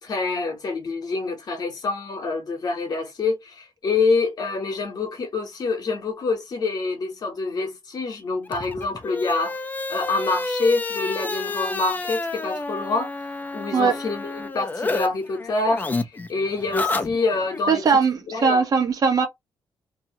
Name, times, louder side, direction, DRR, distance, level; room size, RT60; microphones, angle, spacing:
voice 1, 0.0-9.6 9.9-13.1 13.5-17.8 18.3-18.6, left 3 dB, 50° left, 1.0 m, -26 dB
sound 1, 8.5-15.1 15.3-17.6, left 3 dB, 20° left, 0.5 m, -29 dB
voice 2, 17.7-19.3, right 5 dB, 50° right, 1.0 m, -20 dB
2.7 x 2.3 x 2.8 m
cardioid pair, 125°, 8 cm